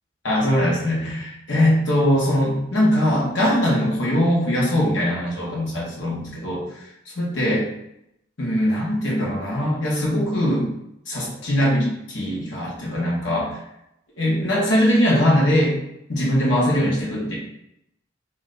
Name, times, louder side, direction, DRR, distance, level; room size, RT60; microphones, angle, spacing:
voice 1, 0.2-6.8 7.1-7.7 8.4-10.7 11.1-13.6 14.2-15.8 16.1-17.3, equal, 80° left, -5 dB, 1.5 m, -21 dB
3.3 x 3.0 x 4.0 m, 0.80 s
head